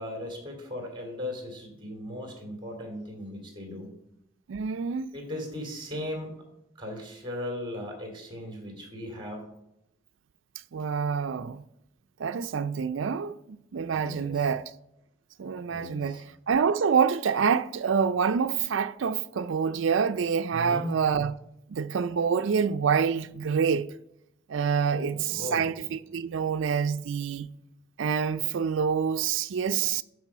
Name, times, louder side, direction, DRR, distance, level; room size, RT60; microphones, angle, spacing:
voice 1, 0.0-3.9 5.1-6.4 6.8-9.5 13.9-14.5 15.7-16.2 20.5-20.9 24.9-25.7, left 1 dB, 25° right, 2.6 m, -37 dB
voice 2, 4.5-5.1 10.7-11.6 12.2-14.7 15.4-21.3 21.7-23.9 24.5-27.5 28.0-30.0, right 6 dB, 75° right, 0.4 m, -27 dB
12.0 x 4.8 x 5.5 m
head